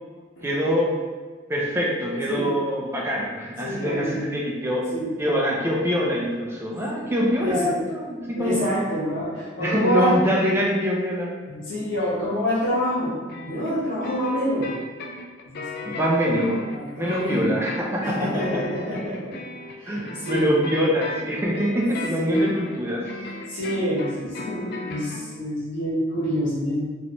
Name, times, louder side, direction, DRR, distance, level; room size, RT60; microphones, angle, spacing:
voice 1, 0.4-0.9 1.5-4.9 5.2-8.6 9.6-11.3 15.8-16.6 16.9-18.6 19.9-23.0, equal, 15° right, -3 dB, 0.5 m, -24 dB
voice 2, 2.2-2.6 3.6-4.2 4.9-5.1 6.9-10.1 11.5-13.1 13.4-14.7 15.5-15.9 16.7-17.5 18.0-19.3 19.8-20.5 22.2-22.5 23.5-26.9, equal, 75° left, -8 dB, 1.4 m, -27 dB
sound 1, 13.3-25.2, left 3 dB, 55° left, 0.3 m, -36 dB
3.1 x 3.0 x 2.6 m, 1.4 s
head